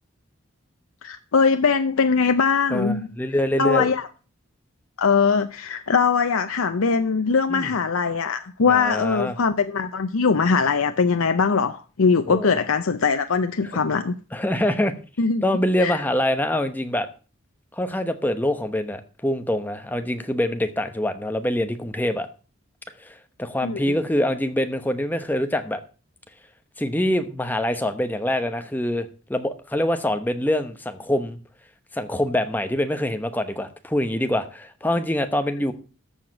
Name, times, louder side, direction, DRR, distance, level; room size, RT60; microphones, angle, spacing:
voice 1, 1.0-3.1 3.6-4.1 5.0-14.2 15.2-15.4 15.8-16.0 23.6-23.9, left 5 dB, 80° left, 0.6 m, -21 dB
voice 2, 2.7-3.9 7.5-7.7 8.7-9.4 12.3-12.6 14.3-14.9 15.4-17.1 17.7-22.3 23.0-25.8 26.8-31.4 31.9-35.7, left 1 dB, 10° left, 0.9 m, -25 dB
14.0 x 4.9 x 7.2 m
head